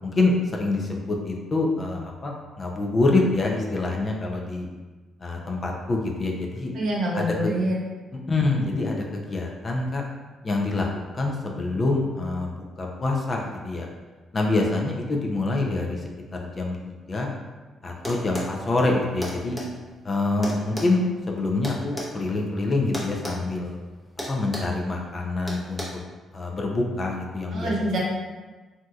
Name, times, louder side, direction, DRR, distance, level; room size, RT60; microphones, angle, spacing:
voice 1, 0.0-4.7 5.2-6.7 7.1-7.6 8.3-10.0 10.4-10.9 11.1-13.9 14.3-17.3 17.8-19.6 20.0-23.8 24.3-26.0 26.3-27.7, left 2 dB, 35° left, 0 dB, 0.5 m, -26 dB
voice 2, 6.7-7.8 27.5-28.0, right 1 dB, 65° right, -4 dB, 0.9 m, -25 dB
sound 1, 18.0-18.5 19.2-19.7 20.4-22.1 22.9-23.4 23.7-23.8 24.2-24.8 25.5-25.8, left 1 dB, 5° left, 0.8 m, -33 dB
3.5 x 2.7 x 2.4 m, 1.3 s
cardioid pair, 90°, 0 cm